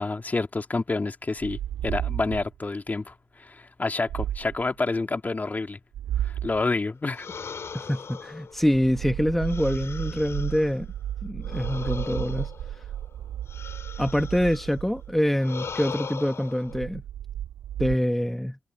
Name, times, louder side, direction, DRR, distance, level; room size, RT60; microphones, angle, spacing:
voice 1, 0.0-5.8 6.2-7.3, left 3 dB, 30° left, 2.3 m, -29 dB
sound 1, 1.4-2.6 4.1-4.7 5.9-6.6 8.5-15.3 16.6-18.0, right 11 dB, 90° right, 4.0 m, -33 dB
sound 2, 7.1-10.8 11.4-14.8 15.4-16.8, left 5 dB, 55° left, 2.4 m, -39 dB
voice 2, 7.7-10.9 11.2-12.8 14.0-17.0 17.8-18.6, equal, 5° left, 1.1 m, -25 dB
cardioid pair, 60°, 6 cm